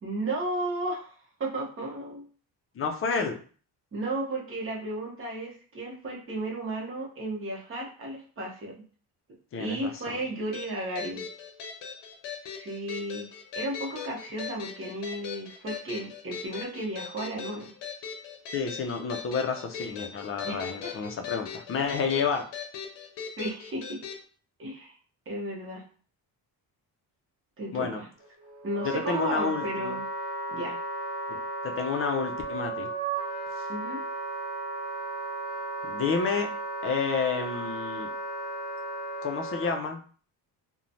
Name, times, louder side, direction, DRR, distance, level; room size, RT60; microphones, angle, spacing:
voice 1, 0.0-2.3 3.9-8.8 9.6-11.3 12.5-13.3 13.5-17.7 20.5-21.0 23.4-24.0 24.6-24.9 25.3-25.8 27.6-28.1 28.6-30.0 30.5-30.8 33.7-34.0, right 1 dB, 30° right, -3 dB, 0.9 m, -34 dB
voice 2, 2.8-3.4 9.5-10.2 18.5-22.4 27.7-28.0 28.8-30.0 31.3-31.4 31.6-32.9 35.8-36.5 36.8-38.1 39.2-40.0, left 5 dB, 35° left, 4 dB, 0.5 m, -30 dB
sound 1, 10.5-24.2, left 7 dB, 85° left, 0.7 m, -40 dB
Wind instrument woodwind instrument, 28.2-39.8, right 2 dB, 5° right, 1.4 m, -35 dB
3.0 x 2.2 x 2.6 m, 0.42 s
cardioid pair, 135°, 40 cm